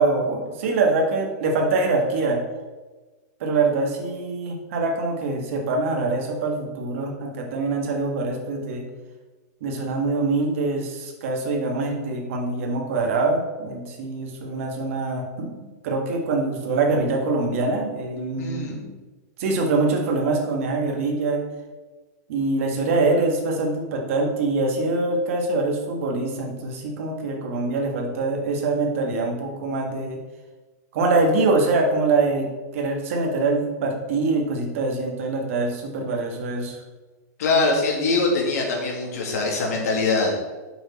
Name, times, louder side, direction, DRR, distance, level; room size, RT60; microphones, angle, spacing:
voice 1, 0.0-2.4 3.4-8.9 9.6-15.6 15.8-19.0 19.4-21.4 22.3-30.2 30.9-36.8, right 3 dB, 45° right, 1 dB, 1.7 m, -24 dB
voice 2, 18.4-18.8 37.4-40.5, left 3 dB, 60° left, 0 dB, 2.3 m, -23 dB
8.0 x 6.3 x 4.3 m, 1.3 s
supercardioid pair, 175°, 10 cm